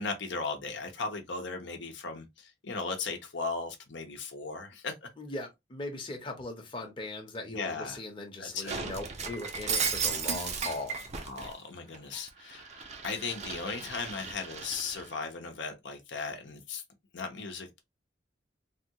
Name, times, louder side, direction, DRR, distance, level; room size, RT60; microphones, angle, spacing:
voice 1, 0.0-5.1 7.5-8.0 8.4-8.8 11.3-16.8 17.1-17.8, left 4 dB, 70° left, 0.8 m, -37 dB
voice 2, 5.2-11.0, left 2 dB, 30° left, 0.8 m, -39 dB
Shatter, 8.7-11.5 11.9-15.1, right 5 dB, 35° right, 0.6 m, -35 dB
3.4 x 2.3 x 2.8 m
head